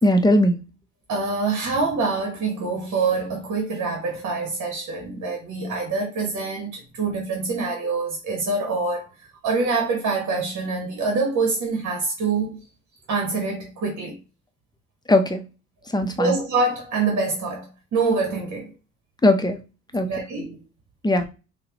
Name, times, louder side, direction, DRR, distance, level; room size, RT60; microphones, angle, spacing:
voice 1, 0.0-0.6 15.1-15.4 15.9-16.3 19.2-19.6 19.9-20.1 21.0-21.3, left 1 dB, 15° left, 0.7 m, -19 dB
voice 2, 1.1-9.0 9.4-12.6 13.1-14.2 16.2-18.7 20.0-20.6, right 4 dB, 70° right, 1.3 m, -25 dB
5.7 x 2.2 x 2.9 m
cardioid pair, 90°, 30 cm